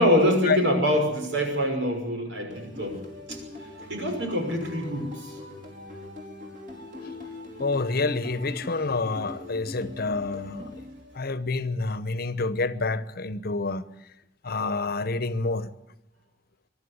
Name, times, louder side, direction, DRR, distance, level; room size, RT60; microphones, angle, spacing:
voice 1, 0.0-3.4 3.9-5.4, equal, 85° right, 6.1 m, -25 dB
sound 1, 2.5-11.4, left 2 dB, 45° right, 5.1 m, -41 dB
voice 2, 7.6-10.7 11.1-13.8 14.4-15.7, left 3 dB, 55° left, 1.0 m, -28 dB
23.5 x 12.0 x 9.7 m
head